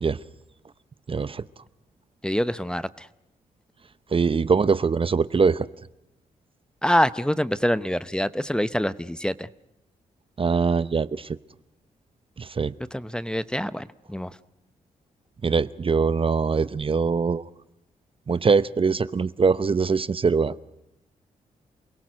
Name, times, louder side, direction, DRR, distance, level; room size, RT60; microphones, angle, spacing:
voice 1, 1.1-1.4 4.1-5.7 10.4-11.3 12.4-12.7 15.4-17.4 18.3-20.7, right 5 dB, 40° right, 16 dB, 0.7 m, -22 dB
voice 2, 2.2-3.1 6.8-9.5 12.9-14.3, equal, 5° left, 15 dB, 0.8 m, -25 dB
28.5 x 17.5 x 6.3 m, 0.88 s
cardioid pair, 60°, 15 cm